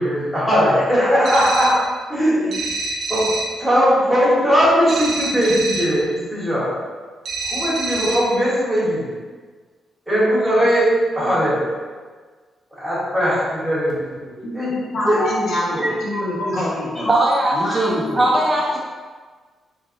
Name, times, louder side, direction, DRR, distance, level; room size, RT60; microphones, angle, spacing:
voice 1, 0.0-1.8 2.1-6.8 7.4-9.1 10.1-11.7 12.7-14.7 15.0-15.3 15.7-15.9, equal, 5° left, -10 dB, 1.4 m, -19 dB
sound 1, 1.2-1.9 2.5-3.6 4.9-6.0 7.2-8.4, right 2 dB, 45° right, 0.7 m, -27 dB
voice 2, 14.4-17.2 17.5-18.3, left 1 dB, 70° left, -7 dB, 1.3 m, -25 dB
voice 3, 17.1-18.8, right 1 dB, 15° right, -3 dB, 0.4 m, -19 dB
4.4 x 3.4 x 2.6 m, 1.5 s
wide cardioid pair, 175°, 0 cm